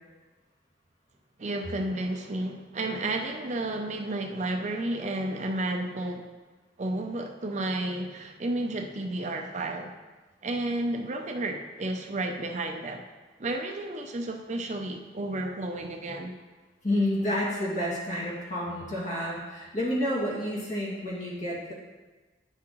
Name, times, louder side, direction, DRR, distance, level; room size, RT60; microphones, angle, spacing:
voice 1, 1.4-6.3 6.8-9.9 10.4-13.0 13.4-16.3, right 2 dB, 40° right, 4 dB, 0.6 m, -32 dB
voice 2, 16.8-21.7, left 1 dB, 45° left, -5 dB, 2.1 m, -29 dB
9.8 x 6.0 x 3.1 m, 1.2 s
head